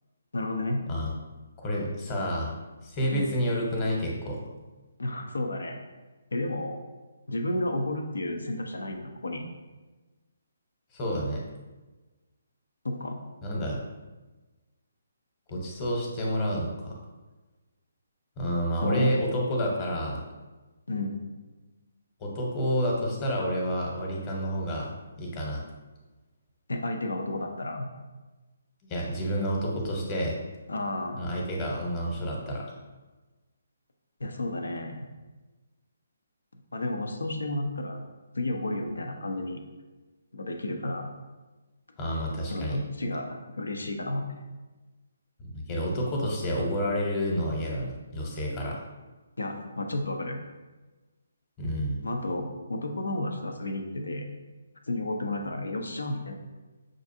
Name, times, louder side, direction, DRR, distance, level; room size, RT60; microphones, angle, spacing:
voice 1, 0.3-0.8 3.1-3.3 5.0-5.8 6.3-6.8 7.3-9.5 12.8-13.2 18.8-19.1 20.9-21.2 26.7-27.9 30.7-31.2 34.2-35.1 36.7-38.0 38.3-39.6 40.3-41.1 42.5-44.4 49.4-50.4 52.0-54.3 54.9-56.3, left 2 dB, 85° left, 4 dB, 0.6 m, -32 dB
voice 2, 1.6-2.5 2.9-4.4 10.9-11.4 13.4-13.8 15.5-17.0 18.4-20.2 22.2-25.6 28.9-30.4 31.2-32.6 42.0-42.8 45.4-48.8 51.6-52.0, equal, 25° left, -2 dB, 1.0 m, -29 dB
6.3 x 2.5 x 2.7 m, 1.2 s
figure-of-eight pair, 150°, 0 cm